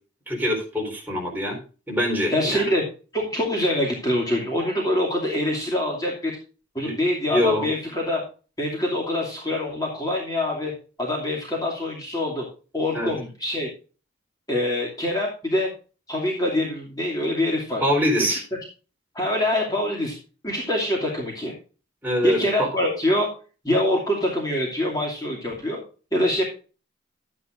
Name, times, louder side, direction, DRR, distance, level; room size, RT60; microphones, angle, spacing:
voice 1, 0.3-1.6 1.9-2.7 6.8-6.9 7.3-7.7 12.9-13.1 17.8-18.4 22.0-22.7, left 1 dB, 10° right, -1 dB, 4.1 m, -24 dB
voice 2, 2.3-2.8 3.1-6.3 6.7-8.2 8.6-10.7 11.0-12.4 12.7-13.7 14.5-15.7 16.1-17.8 18.3-18.4 19.1-20.2 20.4-21.5 22.2-23.3 23.6-25.8 26.1-26.4, left 1 dB, 20° left, -3 dB, 2.6 m, -24 dB
12.5 x 9.7 x 2.6 m, 0.35 s
head